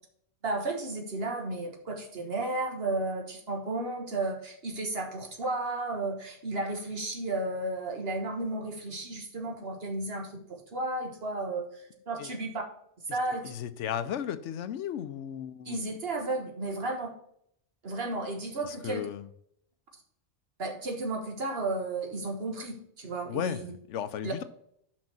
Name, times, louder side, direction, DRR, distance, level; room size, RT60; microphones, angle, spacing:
voice 1, 0.4-12.6 13.1-13.5 15.6-17.1 17.8-19.0 20.6-23.7 24.2-24.3, right 2 dB, 60° right, 3 dB, 1.6 m, -33 dB
voice 2, 13.4-15.8 18.6-19.3 23.2-24.4, left 9 dB, 85° left, 13 dB, 1.0 m, -35 dB
6.1 x 5.3 x 6.0 m, 0.70 s
omnidirectional pair, 1.2 m